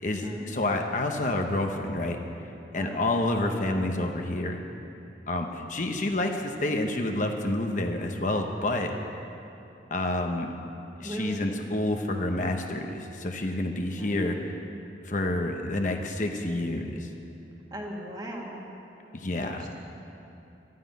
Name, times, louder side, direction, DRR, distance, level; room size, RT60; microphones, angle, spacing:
voice 1, 0.5-2.2 2.7-4.6 5.3-8.9 9.9-10.5 11.0-14.6 15.0-17.1 19.1-19.6, left 1 dB, 45° left, 3 dB, 0.9 m, -28 dB
voice 2, 2.7-3.1 11.0-11.6 13.4-13.6 14.0-14.5 17.7-18.7 19.0-19.1 19.6-19.7, equal, 20° right, -1 dB, 1.7 m, -39 dB
12.5 x 9.4 x 9.3 m, 2.9 s
head